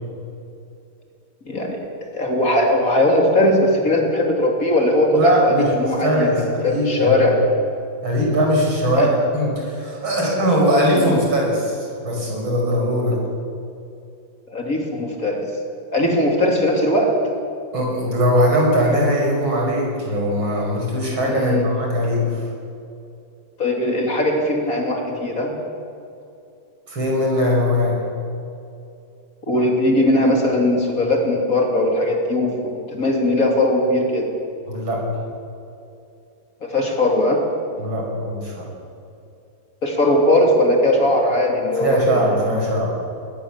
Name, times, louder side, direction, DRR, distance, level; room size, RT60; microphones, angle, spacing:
voice 1, 1.4-1.8 2.1-7.4 8.9-9.1 10.9-11.1 14.5-15.4 15.9-17.2 21.3-21.6 23.6-25.5 29.5-34.3 36.6-37.4 39.8-42.7, left 1 dB, 40° left, 1 dB, 3.4 m, -19 dB
voice 2, 5.1-5.7 6.0-7.3 8.0-13.2 17.7-22.5 26.9-28.0 34.7-35.0 37.8-38.7 41.8-42.9, equal, 75° right, -1 dB, 6.4 m, -20 dB
20.5 x 20.0 x 7.4 m, 2.6 s
omnidirectional pair, 2.2 m